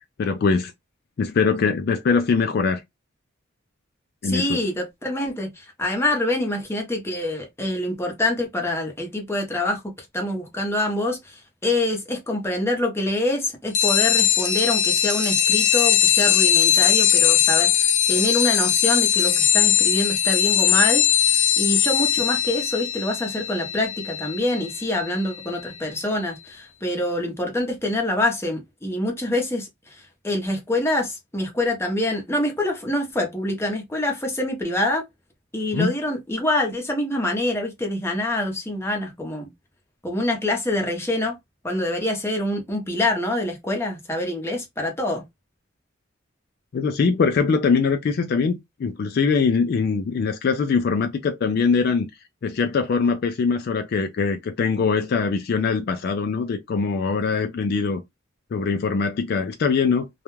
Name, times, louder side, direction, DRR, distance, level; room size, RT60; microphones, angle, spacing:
voice 1, 0.2-0.7 1.2-2.8 4.2-4.6 35.7-35.9 46.7-52.1 52.4-58.0 58.5-60.1, left 5 dB, 50° left, 0.3 m, -22 dB
voice 2, 4.2-21.0 21.3-35.0 35.5-39.5 40.0-41.3 41.6-45.2, left 1 dB, 15° left, 0.7 m, -25 dB
sound 1, 13.7-25.8, left 9 dB, 75° left, 0.8 m, -20 dB
2.3 x 2.2 x 3.0 m
head